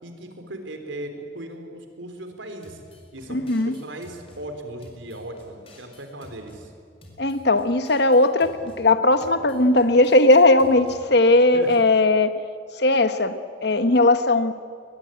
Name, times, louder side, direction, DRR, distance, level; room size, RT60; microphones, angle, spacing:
voice 1, 0.0-2.8 3.1-6.7 11.5-11.7, right 1 dB, 80° right, 6 dB, 3.6 m, -37 dB
sound 1, 2.6-4.4 4.8-6.6 7.0-8.8 9.2-11.0, left 1 dB, 30° left, 4.6 m, -49 dB
voice 2, 3.3-3.7 7.2-12.4 12.7-14.5, left 2 dB, 60° left, 10 dB, 1.3 m, -18 dB
22.5 x 21.0 x 9.1 m, 2.2 s
head